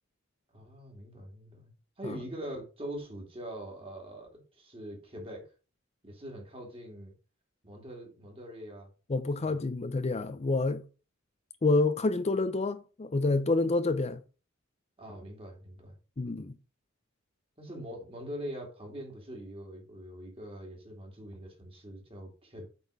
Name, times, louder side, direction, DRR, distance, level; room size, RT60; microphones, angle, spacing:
voice 1, 0.5-5.4 6.0-7.1 7.6-8.9 9.4-9.6 15.0-16.0 17.6-22.7, equal, 30° right, 2.6 m, -43 dB
voice 2, 9.1-10.8 11.6-14.2 16.2-16.5, left 3 dB, 35° left, 0.5 m, -28 dB
8.0 x 4.3 x 5.2 m
head